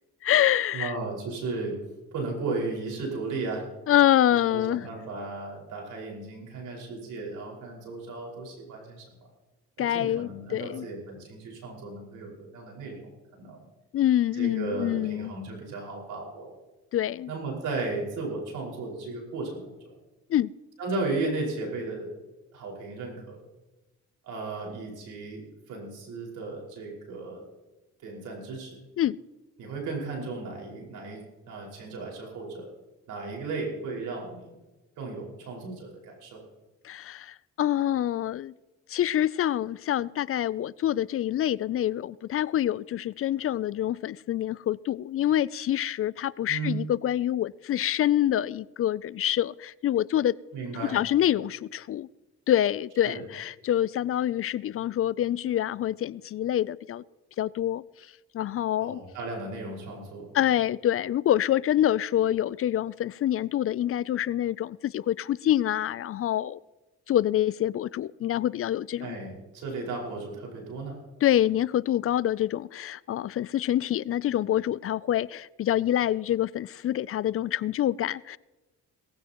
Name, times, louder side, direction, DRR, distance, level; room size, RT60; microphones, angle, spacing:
voice 1, 0.2-0.9 3.9-4.8 9.8-10.9 13.9-15.3 16.9-17.3 20.3-20.5 29.0-29.2 36.8-38.5 38.9-50.4 50.9-52.1 52.5-57.0 57.4-57.8 58.3-59.0 60.3-66.6 67.1-69.2 71.2-78.4, left 12 dB, 50° left, 0.4 m, -26 dB
voice 2, 0.7-1.8 2.1-3.7 4.3-9.3 9.8-13.7 14.3-16.6 17.3-20.0 20.8-22.1 22.5-23.4 24.2-27.4 28.0-28.8 29.6-32.7 33.1-34.5 35.0-36.4 46.5-46.8 50.5-51.0 53.1-53.2 58.8-60.5 69.0-71.0, right 3 dB, 85° right, 5.3 m, -35 dB
18.5 x 15.5 x 3.0 m
cardioid pair, 90°, 30 cm